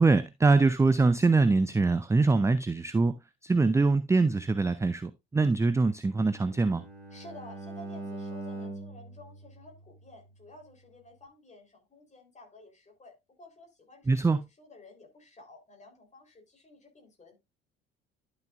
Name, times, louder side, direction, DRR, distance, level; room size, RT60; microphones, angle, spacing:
voice 1, 0.0-3.1 3.4-6.8 14.1-14.4, right 3 dB, 10° right, 0.5 m, -23 dB
Bowed string instrument, 6.1-10.3, right 2 dB, 80° left, 2.8 m, -42 dB
voice 2, 7.1-17.4, left 2 dB, 20° left, 3.8 m, -52 dB
11.5 x 6.3 x 2.5 m
figure-of-eight pair, 55°, 31 cm